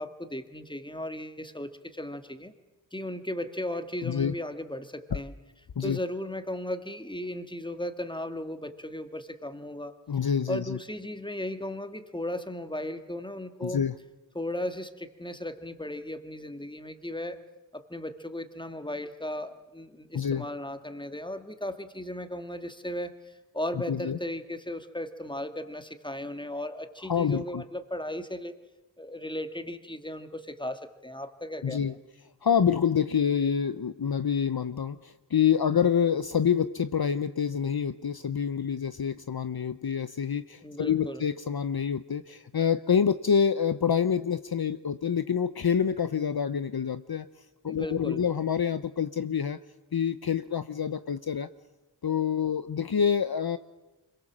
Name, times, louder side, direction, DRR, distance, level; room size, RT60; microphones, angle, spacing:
voice 1, 0.0-2.5 2.9-5.3 5.8-9.9 10.5-13.8 14.4-17.4 17.7-28.5 29.0-32.0 40.6-41.2 47.6-48.2, left 1 dB, 10° left, 8 dB, 1.9 m, -36 dB
voice 2, 4.0-4.3 5.1-5.2 5.8-6.0 10.1-10.8 13.6-13.9 20.1-20.4 23.7-24.2 27.0-27.6 31.6-31.9 32.4-47.3 47.6-49.6 49.9-51.5 52.0-53.6, left 7 dB, 55° left, 12 dB, 0.7 m, -27 dB
25.5 x 22.5 x 7.4 m, 1.1 s
wide cardioid pair, 45°, 45 cm